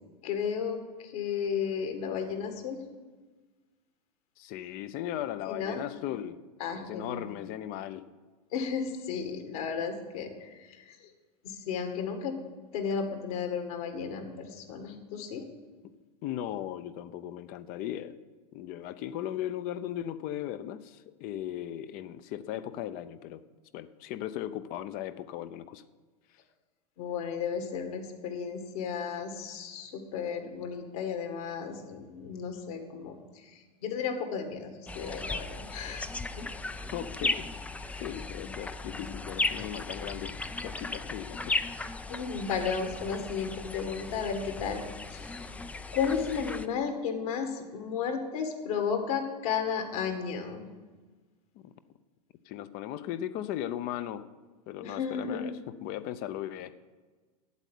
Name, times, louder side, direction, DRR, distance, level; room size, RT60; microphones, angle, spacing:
voice 1, 0.2-2.8 5.5-5.8 6.6-7.2 8.5-11.0 11.4-12.3 12.7-15.4 27.0-36.1 42.1-44.8 45.1-45.3 45.9-50.6 54.8-55.5, left 6 dB, 60° left, 5 dB, 2.1 m, -33 dB
voice 2, 4.4-6.4 6.7-8.1 15.8-15.9 16.2-18.2 18.5-23.4 23.7-25.8 36.9-37.5 37.9-40.3 40.6-41.6 51.6-51.7 52.5-54.3 54.7-56.8, left 12 dB, 45° left, 13 dB, 0.7 m, -37 dB
sound 1, 34.9-46.7, left 3 dB, 5° left, 0.4 m, -36 dB
8.2 x 8.1 x 8.4 m, 1.3 s
hypercardioid pair, 100°, 21 cm